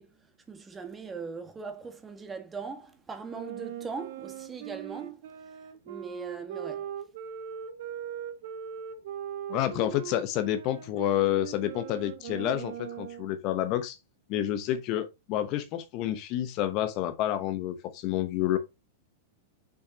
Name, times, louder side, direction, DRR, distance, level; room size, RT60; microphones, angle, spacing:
voice 1, 0.0-5.6 5.8-6.9, right 4 dB, 15° right, 1.6 m, -40 dB
Wind instrument woodwind instrument, 3.3-13.3, right 9 dB, 55° right, 1.1 m, -40 dB
voice 2, 9.5-14.0 14.3-18.6, left 12 dB, 40° left, 0.9 m, -29 dB
6.4 x 6.1 x 2.9 m
figure-of-eight pair, 95°, 0 cm